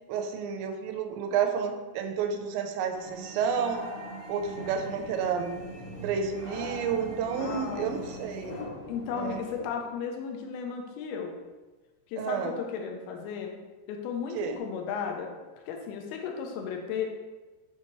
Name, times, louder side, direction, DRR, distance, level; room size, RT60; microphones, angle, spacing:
voice 1, 0.1-3.8 4.3-5.7 6.0-8.6 9.1-9.4 12.2-12.6 14.3-14.6, right 7 dB, 85° right, 5 dB, 2.9 m, -30 dB
sound 1, 2.9-8.6, right 2 dB, 65° right, 1.8 m, -43 dB
sound 2, 4.4-9.7, left 2 dB, 60° left, 1.6 m, -42 dB
voice 2, 7.4-8.1 8.9-11.3 12.1-13.6 13.9-15.3 15.7-17.1, left 6 dB, 75° left, 2 dB, 2.5 m, -35 dB
8.4 x 2.9 x 4.6 m, 1.2 s
omnidirectional pair, 5.2 m